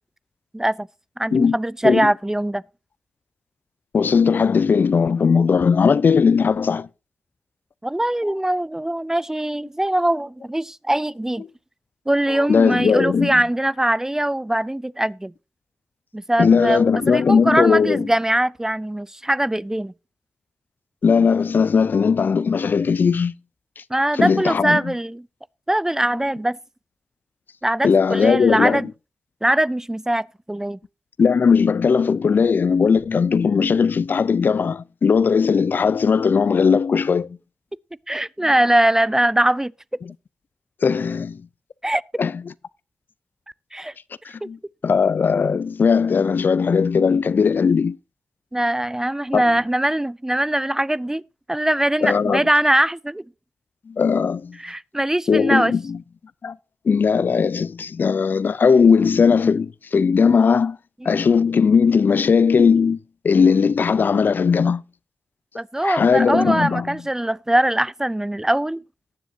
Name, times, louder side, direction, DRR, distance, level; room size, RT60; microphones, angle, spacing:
voice 1, 0.5-0.9 1.2-2.6 7.8-11.4 12.1-15.3 16.1-19.9 23.9-25.3 25.7-26.6 27.6-28.9 29.4-30.8 38.1-39.7 41.8-42.0 43.7-43.9 44.4-44.5 48.5-51.2 51.5-53.2 54.6-55.7 61.0-61.2 65.6-68.8, right 1 dB, 15° right, 0.4 m, -21 dB
voice 2, 3.9-6.9 12.3-13.3 16.4-18.1 21.0-23.3 24.2-24.8 27.8-28.8 31.2-37.4 40.8-41.4 42.2-42.3 44.3-44.6 44.8-48.0 49.3-49.4 52.0-52.4 53.9-54.6 55.3-56.0 56.4-56.6 56.9-60.8 61.1-63.0 63.2-64.8 65.8-67.0, left 5 dB, 55° left, 0.4 m, -18 dB
18.5 x 7.1 x 2.7 m
supercardioid pair, 40°, 4 cm